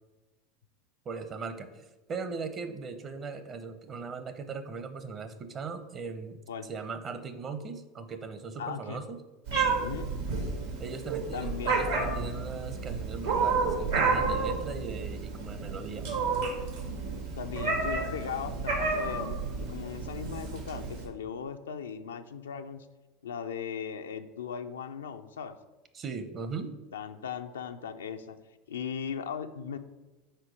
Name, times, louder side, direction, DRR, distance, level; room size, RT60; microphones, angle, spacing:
voice 1, 1.1-9.2 10.8-16.1 25.9-26.7, right 4 dB, 35° right, 9 dB, 0.7 m, -39 dB
voice 2, 8.6-9.0 9.8-10.1 11.3-11.8 17.4-19.4 19.7-22.9 23.2-25.6 26.9-28.4 28.7-29.8, left 7 dB, 85° left, 8 dB, 0.4 m, -38 dB
Meow, 9.5-21.1, right 4 dB, 80° right, 1.7 m, -31 dB
4.4 x 4.3 x 5.0 m, 1.1 s
hypercardioid pair, 90°, 0 cm